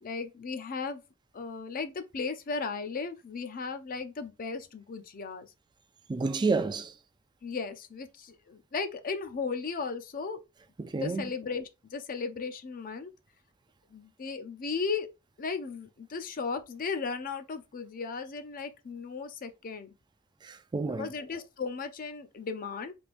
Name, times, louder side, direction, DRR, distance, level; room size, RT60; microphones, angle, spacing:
voice 1, 0.0-1.0 1.3-5.5 7.4-10.4 11.0-13.1 13.9-15.1 15.4-19.9 21.0-22.9, left 4 dB, 45° left, 0.5 m, -36 dB
voice 2, 6.1-6.9 10.8-11.3 20.4-21.1, right 4 dB, 20° right, 0.3 m, -30 dB
3.4 x 3.2 x 2.5 m
head